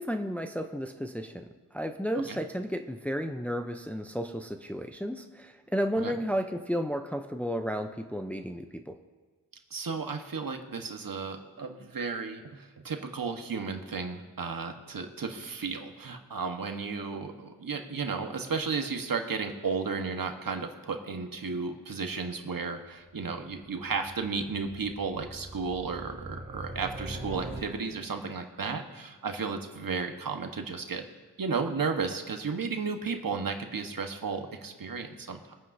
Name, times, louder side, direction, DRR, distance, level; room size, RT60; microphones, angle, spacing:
voice 1, 0.0-1.4 1.7-9.0, equal, 5° left, 6 dB, 0.7 m, -33 dB
voice 2, 9.7-31.0 31.4-35.5, right 5 dB, 50° right, 4 dB, 1.5 m, -34 dB
sound 1, 22.9-28.2, right 2 dB, 20° right, 2.6 m, -43 dB
25.0 x 9.2 x 2.8 m, 1.4 s
cardioid pair, 55°, 42 cm